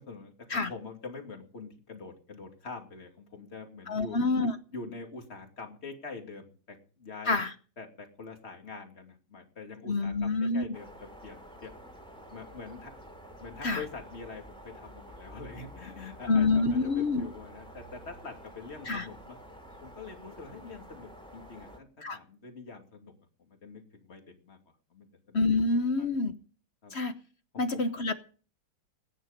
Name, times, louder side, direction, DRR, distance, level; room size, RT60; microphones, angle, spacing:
voice 1, 0.0-4.2 4.7-7.4 7.8-10.9 11.2-11.7 12.3-12.9 13.4-19.4 19.8-23.1 23.4-24.6 24.9-25.4 26.0-26.2 26.8-27.0 27.5-27.8, left 4 dB, 30° left, 3 dB, 2.8 m, -45 dB
voice 2, 3.9-4.6 7.2-7.5 9.9-10.6 13.6-13.8 16.3-17.3 18.9-19.1 22.0-22.2 25.3-26.4 26.9-27.2 27.6-28.1, left 3 dB, 50° left, 10 dB, 0.8 m, -27 dB
sound 1, 10.7-21.8, equal, ahead, 2.8 m, -49 dB
20.0 x 10.0 x 5.2 m, 0.40 s
omnidirectional pair, 2.3 m